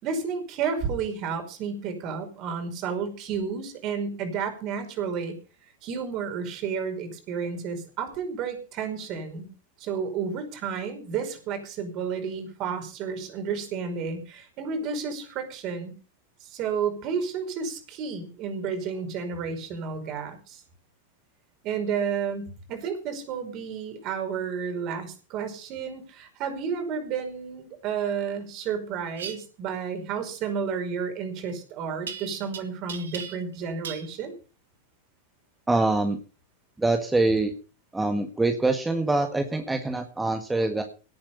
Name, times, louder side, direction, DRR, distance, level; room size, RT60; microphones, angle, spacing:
voice 1, 0.0-5.3 5.8-9.5 9.8-15.9 16.4-20.6 21.6-34.3, right 6 dB, 40° right, 6 dB, 5.2 m, -31 dB
sound 1, 29.1-29.4 32.1-32.6 32.9-33.6 33.8-34.1, right 7 dB, 65° right, 2.3 m, -37 dB
voice 2, 35.7-36.2 36.8-37.5 37.9-40.8, right 2 dB, 10° right, 5 dB, 1.8 m, -24 dB
18.0 x 8.7 x 5.6 m, 0.36 s
figure-of-eight pair, 90°, 0 cm